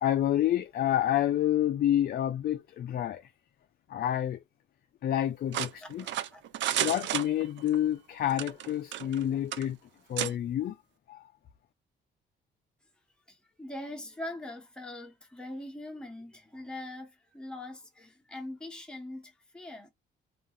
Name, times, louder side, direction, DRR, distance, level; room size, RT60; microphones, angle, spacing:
voice 1, 0.0-3.2 3.9-4.4 5.0-6.0 6.8-9.8 10.1-10.7 11.1-11.2, left 11 dB, 50° left, 0.4 m, -28 dB
sound 1, 5.5-7.8 8.3-9.2 9.5-9.7 10.2-10.3, right 12 dB, 70° right, 0.4 m, -32 dB
voice 2, 5.8-6.4 13.3-19.9, left 1 dB, 5° left, 1.0 m, -42 dB
2.4 x 2.4 x 2.8 m
cardioid pair, 90°, 20 cm